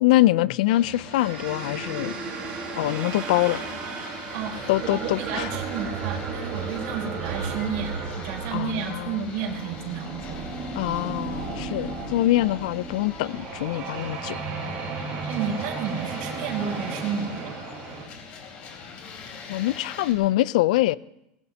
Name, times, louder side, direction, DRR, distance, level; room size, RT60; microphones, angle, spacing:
voice 1, 0.0-2.2 2.8-3.6 4.7-5.5 8.5-9.2 10.7-14.4 19.5-21.0, left 16 dB, 75° left, 0.5 m, -24 dB
sound 1, 0.7-20.1, left 5 dB, 35° left, 3.2 m, -42 dB
sound 2, 1.1-18.1, right 5 dB, 35° right, 4.5 m, -34 dB
voice 2, 4.3-10.5 15.1-17.5, right 7 dB, 55° right, 4.1 m, -32 dB
22.5 x 20.5 x 2.9 m
supercardioid pair, 180°, 4 cm